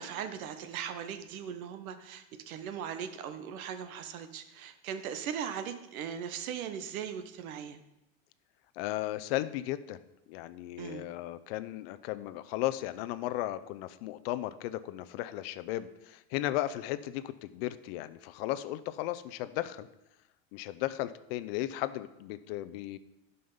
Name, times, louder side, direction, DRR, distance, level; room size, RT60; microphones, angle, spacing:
voice 1, 0.0-7.8 10.8-11.0, right 8 dB, 80° right, 9 dB, 1.3 m, -39 dB
voice 2, 8.8-10.0 10.3-19.9 20.5-23.0, left 15 dB, 45° left, 14 dB, 0.6 m, -35 dB
11.0 x 5.4 x 5.6 m, 0.90 s
supercardioid pair, 160°, 42 cm